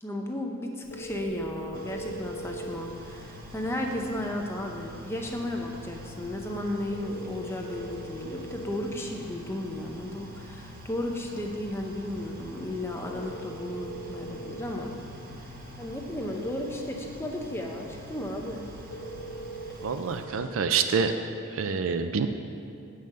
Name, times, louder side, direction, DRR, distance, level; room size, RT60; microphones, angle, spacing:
voice 1, 0.0-14.9 15.4-18.6, left 1 dB, 10° left, 1 dB, 0.6 m, -34 dB
Telephone, 0.8-20.2, right 2 dB, 55° left, 0.8 m, -44 dB
sound 1, 1.7-20.5, right 1 dB, 45° right, 0.9 m, -46 dB
voice 2, 19.8-21.1 21.5-22.3, right 6 dB, 65° right, 8 dB, 0.4 m, -26 dB
7.6 x 5.5 x 6.6 m, 2.5 s
head